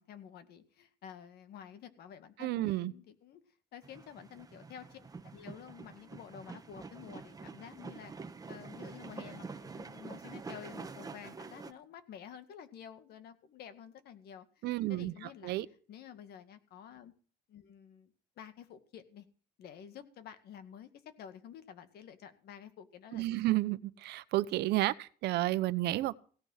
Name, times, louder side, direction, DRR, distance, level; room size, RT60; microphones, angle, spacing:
voice 1, 0.0-3.4 3.7-15.6 15.9-17.1 17.5-19.3 19.6-23.4, left 8 dB, 70° left, 2.0 m, -51 dB
voice 2, 2.4-2.9 14.6-15.1 15.4-15.7 23.1-26.1, right 17 dB, 80° right, 1.0 m, -31 dB
sound 1, 3.8-11.7, right 4 dB, 20° right, 1.4 m, -47 dB
17.0 x 9.9 x 5.8 m
cardioid pair, 110°, 17 cm